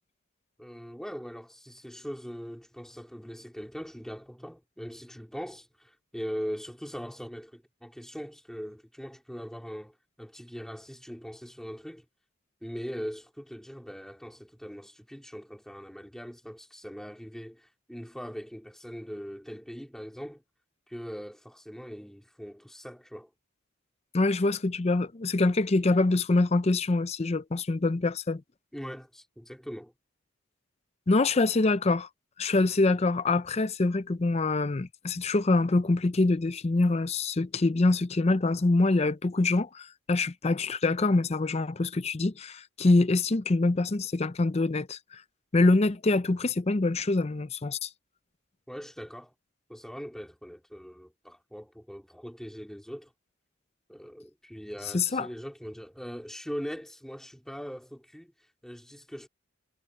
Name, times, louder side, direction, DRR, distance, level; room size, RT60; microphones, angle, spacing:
voice 1, 0.6-12.0 12.6-20.4 20.9-23.3 28.7-29.9 48.7-49.3 49.7-53.1 53.9-59.3, equal, 5° left, 3.3 m, -41 dB
voice 2, 24.1-28.4 31.1-32.1 32.4-45.2 45.5-47.9 54.9-55.3, left 2 dB, 30° left, 0.5 m, -25 dB
head